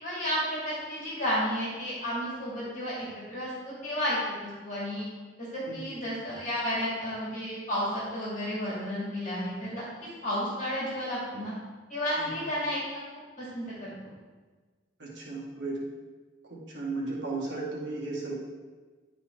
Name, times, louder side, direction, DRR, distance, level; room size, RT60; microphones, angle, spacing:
voice 1, 0.0-5.1 5.4-9.8 10.2-11.5 11.9-12.8 13.1-13.9, equal, 40° left, -7 dB, 2.3 m, -32 dB
voice 2, 5.7-6.0 12.2-12.5 15.0-15.8 16.5-18.3, right 3 dB, 70° right, -4 dB, 1.7 m, -35 dB
10.0 x 4.2 x 4.4 m, 1.4 s
head